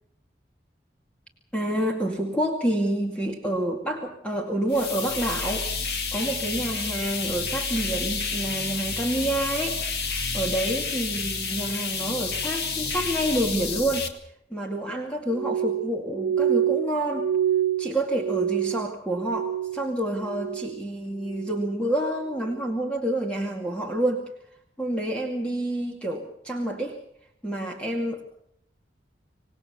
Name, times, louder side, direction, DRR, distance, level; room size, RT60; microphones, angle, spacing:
voice 1, 1.5-5.7 6.1-14.1 14.5-17.3 17.8-24.3 24.8-27.0 27.4-28.2, right 1 dB, 5° left, 1 dB, 2.2 m, -28 dB
sound 1, 4.7-14.1, left 4 dB, 60° left, 2.3 m, -30 dB
Glass, 15.3-19.9 20.2-20.8 21.2-21.8 22.4-22.6, right 10 dB, 50° right, 1.5 m, -27 dB
26.5 x 19.0 x 6.9 m, 0.74 s
head